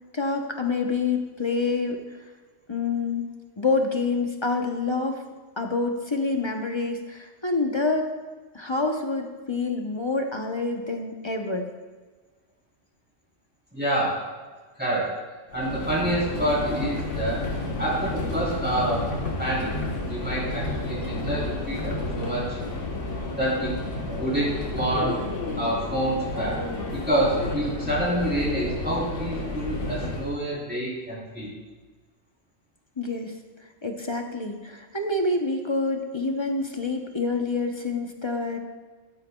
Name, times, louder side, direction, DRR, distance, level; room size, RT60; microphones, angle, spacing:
voice 1, 0.1-2.0 2.7-3.3 3.6-5.2 5.6-8.1 8.5-11.6 33.0-33.3 33.8-38.6, left 3 dB, 25° left, 3 dB, 0.8 m, -27 dB
voice 2, 13.7-14.2 14.8-15.1 15.5-17.4 17.8-19.0 19.4-19.7 20.1-22.6 23.4-23.7 24.2-25.1 25.6-26.6 26.9-31.5, right 1 dB, 10° right, -7 dB, 3.6 m, -27 dB
Subway metro underground, 15.5-30.3, left 2 dB, 80° left, 1.7 m, -31 dB
13.5 x 12.5 x 2.3 m, 1.4 s
omnidirectional pair, 1.2 m